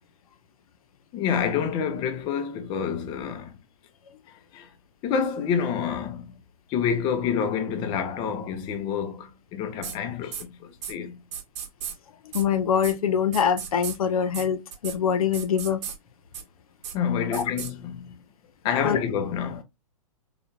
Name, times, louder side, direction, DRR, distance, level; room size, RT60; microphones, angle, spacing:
voice 1, 1.1-3.5 4.5-4.7 5.0-6.3 6.7-11.2 16.9-18.2 18.6-19.6, left 7 dB, 25° left, 0.5 m, -28 dB
sound 1, 9.8-10.0 10.3-10.4 10.8-10.9 11.3-11.9 12.3-12.4 12.8-12.9 13.3-14.0 14.3-14.4 14.7-15.0 15.3-16.0 16.3-16.4 16.8-16.9 17.3-17.7, right 8 dB, 50° right, 0.8 m, -34 dB
voice 2, 12.3-15.8 17.3-17.4 18.8-19.0, left 7 dB, 85° left, 0.5 m, -24 dB
3.3 x 2.3 x 2.2 m
hypercardioid pair, 135°, 18 cm